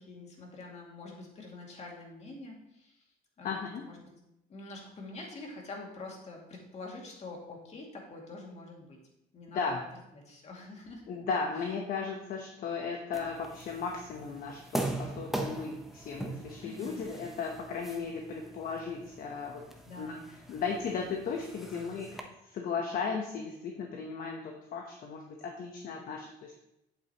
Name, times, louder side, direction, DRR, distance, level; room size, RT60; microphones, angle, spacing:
voice 1, 0.0-3.1 3.4-3.5 3.8-4.1 4.5-9.0 9.3-9.8 10.1-11.1 11.6-11.7 16.6-17.0 19.8-20.3, left 2 dB, 40° left, 0 dB, 2.3 m, -46 dB
voice 2, 3.4-3.9 9.5-9.8 11.1-19.6 20.0-20.1 20.5-26.5, left 5 dB, 55° left, 2 dB, 1.0 m, -36 dB
sound 1, 13.1-22.2, right 1 dB, ahead, 0.8 m, -41 dB
8.4 x 7.8 x 3.0 m, 0.85 s
cardioid pair, 110°, 17 cm